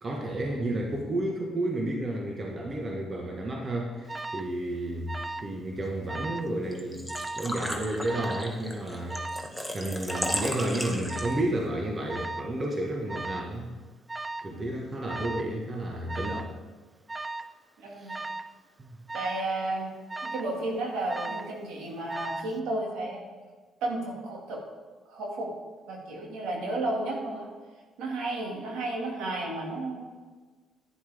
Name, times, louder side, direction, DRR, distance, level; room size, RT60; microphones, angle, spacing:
voice 1, 0.0-5.1 5.4-7.1 7.3-13.7 14.4-16.5 17.9-18.2 18.8-18.9, right 1 dB, 35° right, 0 dB, 1.5 m, -31 dB
Alarm, 4.1-4.5 5.1-5.6 5.8-6.5 7.1-7.5 8.1-8.5 9.1-9.5 10.1-10.5 11.1-11.5 12.1-12.5 13.1-13.5 14.1-14.5 15.1-15.5 16.1-16.5 17.1-17.5 18.1-18.5 19.1-19.5 20.1-20.6 21.1-21.6 22.1-22.6, right 2 dB, 20° right, 0.4 m, -37 dB
Engine / Trickle dribble / Fill (with liquid), 6.7-11.6, equal, 5° right, 1.3 m, -35 dB
voice 2, 14.5-14.8 17.8-18.2 19.1-19.9 20.2-23.2 23.8-24.6 25.1-25.5 25.9-27.5 28.0-30.0, right 2 dB, 85° right, -1 dB, 2.3 m, -33 dB
11.0 x 9.7 x 3.6 m, 1.4 s
cardioid pair, 75°, 0 cm